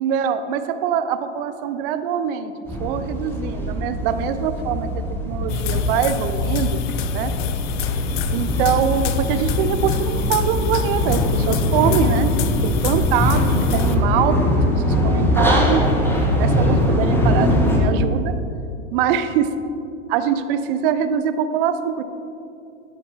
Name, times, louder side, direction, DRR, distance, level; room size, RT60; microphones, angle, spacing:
voice 1, 0.0-2.5 2.8-6.8 7.1-7.3 8.3-12.3 12.6-14.4 14.7-15.8 16.4-18.3 18.9-19.5 20.1-22.0, right 8 dB, 50° right, 10 dB, 0.6 m, -23 dB
sound 1, 2.7-17.8, left 1 dB, 5° left, 0.9 m, -22 dB
sound 2, 5.5-13.9, left 6 dB, 45° left, 0.5 m, -25 dB
10.0 x 4.4 x 4.6 m, 2.5 s
hypercardioid pair, 120°, 36 cm